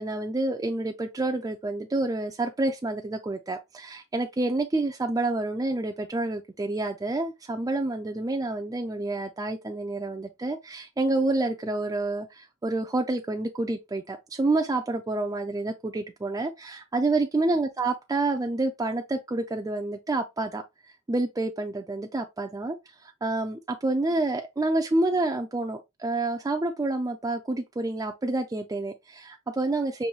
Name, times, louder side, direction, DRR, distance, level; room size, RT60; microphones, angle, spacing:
voice 1, 0.0-20.6 21.1-22.8 23.0-30.1, right 2 dB, 15° right, 0.3 m, -28 dB
5.4 x 2.6 x 2.9 m
head